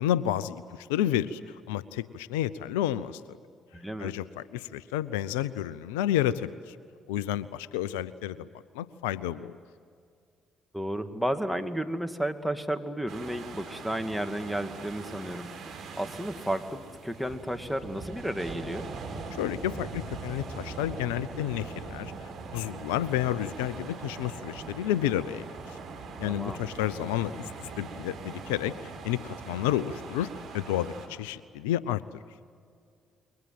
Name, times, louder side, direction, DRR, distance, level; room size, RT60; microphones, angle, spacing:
voice 1, 0.0-3.2 4.0-6.8 7.1-8.5 8.7-9.5 19.4-22.1 22.5-25.8 26.2-28.7 29.0-30.3 30.5-32.0, left 12 dB, 85° left, 17 dB, 0.6 m, -30 dB
voice 2, 3.7-4.1 10.7-18.9 26.2-26.6, right 1 dB, ahead, 7 dB, 2.4 m, -33 dB
sound 1, 13.1-31.1, right 4 dB, 65° right, 4.7 m, -41 dB
29.0 x 23.0 x 7.8 m, 2.2 s
hypercardioid pair, 50°, 0 cm